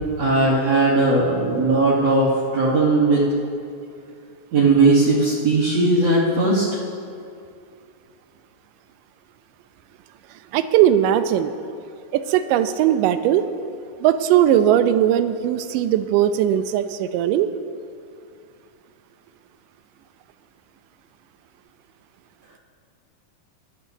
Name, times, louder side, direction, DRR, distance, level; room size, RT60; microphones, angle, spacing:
voice 1, 0.2-3.3 4.5-6.7, right 2 dB, 55° right, -7 dB, 2.2 m, -18 dB
voice 2, 10.5-11.5 12.1-13.5 14.0-17.5, right 11 dB, 85° right, 11 dB, 2.2 m, -19 dB
18.0 x 11.5 x 2.7 m, 2.4 s
omnidirectional pair, 3.9 m